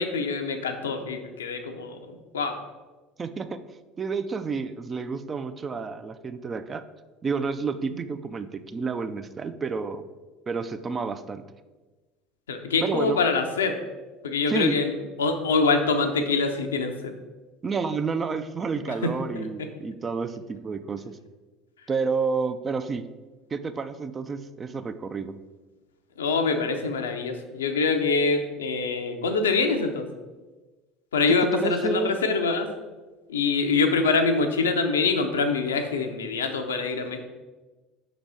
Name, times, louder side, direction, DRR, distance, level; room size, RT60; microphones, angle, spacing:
voice 1, 0.0-2.6 12.5-13.8 14.2-14.9 15.2-17.1 19.0-19.1 19.3-19.7 26.2-30.1 31.1-32.7 33.3-37.2, left 4 dB, 75° left, 6 dB, 0.5 m, -25 dB
voice 2, 3.2-3.6 4.0-6.8 7.2-10.0 10.5-11.5 12.8-13.2 14.5-14.8 17.6-21.2 21.9-23.1 23.5-25.4 31.3-32.2, right 5 dB, 30° right, 11 dB, 0.4 m, -30 dB
5.3 x 4.0 x 4.8 m, 1.2 s
figure-of-eight pair, 70°, 0 cm